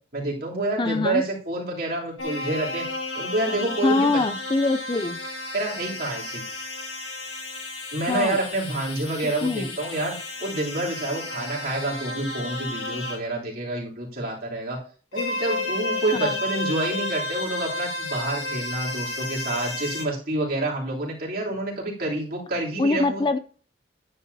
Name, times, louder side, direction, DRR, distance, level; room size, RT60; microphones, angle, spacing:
voice 1, 0.1-2.8 3.1-4.2 5.5-6.4 7.9-14.8 15.1-23.2, right 2 dB, 50° right, -3 dB, 3.0 m, -28 dB
voice 2, 0.8-1.2 3.8-5.2 8.1-8.4 9.2-9.8 16.2-16.4 22.8-23.4, left 3 dB, 25° left, 12 dB, 0.4 m, -24 dB
sound 1, 2.2-13.2 15.1-20.0, left 2 dB, 80° left, 2.1 m, -32 dB
10.0 x 9.7 x 2.7 m, 0.41 s
head